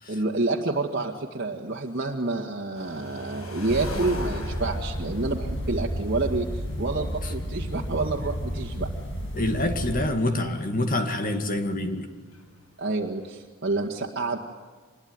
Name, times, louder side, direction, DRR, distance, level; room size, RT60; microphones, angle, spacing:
voice 1, 0.1-8.9 12.8-14.4, right 2 dB, 45° right, -1 dB, 2.1 m, -28 dB
sound 1, 2.7-7.6 7.8-7.9 8.1-8.2 8.9-9.1 9.4-9.5 9.8-9.9 10.1-10.6 11.9-12.0 12.3-13.3, left 1 dB, 75° left, 6.0 m, -39 dB
sound 2, 3.7-10.0, equal, 60° left, 5.8 m, -32 dB
voice 2, 9.3-12.1, left 1 dB, 40° left, 7 dB, 2.2 m, -26 dB
26.0 x 22.0 x 9.7 m, 1.4 s
head